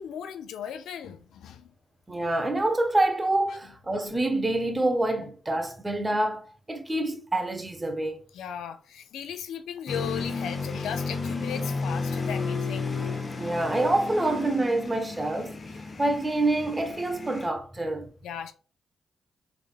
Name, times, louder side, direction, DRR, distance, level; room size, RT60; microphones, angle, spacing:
voice 1, 0.0-1.7 8.3-13.0 18.2-18.5, left 8 dB, 90° left, 0.4 m, -37 dB
voice 2, 2.1-8.2 13.4-15.6 16.0-18.1, right 2 dB, 20° right, 0.8 m, -26 dB
sound 1, 9.9-17.5, left 4 dB, 40° left, 0.7 m, -33 dB
3.5 x 3.4 x 2.4 m
cardioid pair, 70°, 0 cm